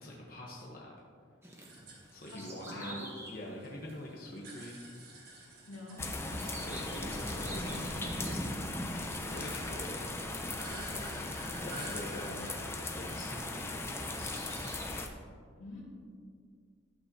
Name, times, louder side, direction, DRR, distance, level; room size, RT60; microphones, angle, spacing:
voice 1, 0.0-0.9 2.1-4.8 6.6-8.1 9.2-10.1 10.3-11.3 11.6-14.5, left 1 dB, 45° left, -3 dB, 1.0 m, -45 dB
Bird vocalization bird call bird song, 1.4-13.5 14.0-14.9, right 1 dB, 10° right, 1.2 m, -46 dB
sound 1, 1.6-3.7 4.0-7.3 7.6-14.0, right 2 dB, 50° right, 1.6 m, -51 dB
voice 2, 2.3-3.1 5.6-6.0 10.9-11.3 15.6-15.8, left 2 dB, 85° left, -4 dB, 2.3 m, -46 dB
sound 2, 6.0-15.1, left 2 dB, 10° left, 0.5 m, -38 dB
12.0 x 8.3 x 2.8 m, 2.2 s
head